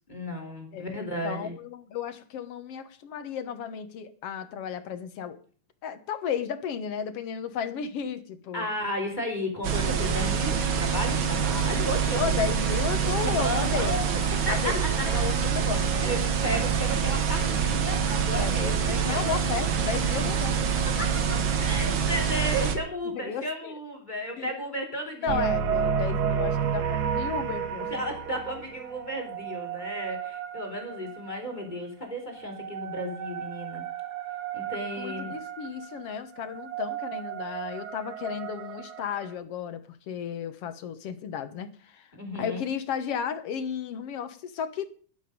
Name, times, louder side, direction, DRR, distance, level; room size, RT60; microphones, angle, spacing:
voice 1, 0.1-1.5 8.5-12.4 13.4-14.0 14.3-15.3 16.0-19.4 20.6-20.7 21.0-25.5 27.9-33.8 34.5-35.3 42.1-42.6, equal, 15° left, 2 dB, 3.9 m, -34 dB
voice 2, 0.7-5.4 5.8-8.7 12.1-14.0 14.5-16.2 18.3-20.6 23.1-23.7 24.4-24.6 25.2-27.9 35.0-42.1 42.4-44.9, left 7 dB, 55° left, 11 dB, 2.1 m, -34 dB
sound 1, 9.6-22.8, right 7 dB, 45° right, 1.9 m, -26 dB
sound 2, 25.3-31.5 32.3-39.3, right 7 dB, 85° right, 0.8 m, -32 dB
12.5 x 11.5 x 5.2 m, 0.42 s
omnidirectional pair, 3.6 m